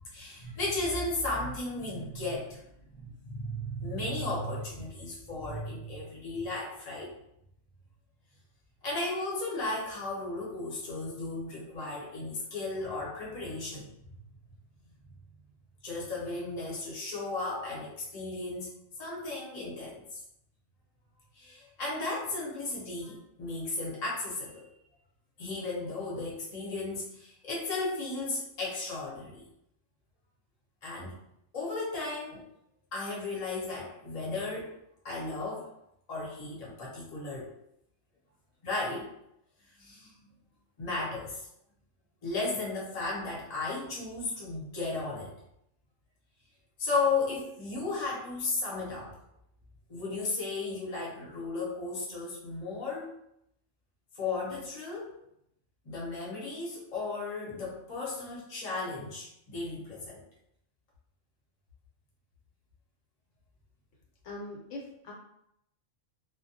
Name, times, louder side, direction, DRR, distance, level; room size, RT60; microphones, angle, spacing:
voice 1, 0.0-2.6 2.9-7.2 8.8-14.1 15.8-18.7 19.0-20.2 21.3-24.7 25.4-29.4 30.8-31.1 31.5-32.4 32.9-34.8 35.0-35.7 36.1-37.5 38.6-39.1 39.8-40.2 40.8-41.5 42.2-45.4 46.8-49.2 49.9-53.2 54.1-55.2 55.8-60.2, left 3 dB, 40° left, -5 dB, 0.8 m, -35 dB
voice 2, 64.2-65.1, left 2 dB, 70° left, -3 dB, 1.0 m, -41 dB
2.2 x 2.1 x 2.7 m, 0.77 s
omnidirectional pair, 1.3 m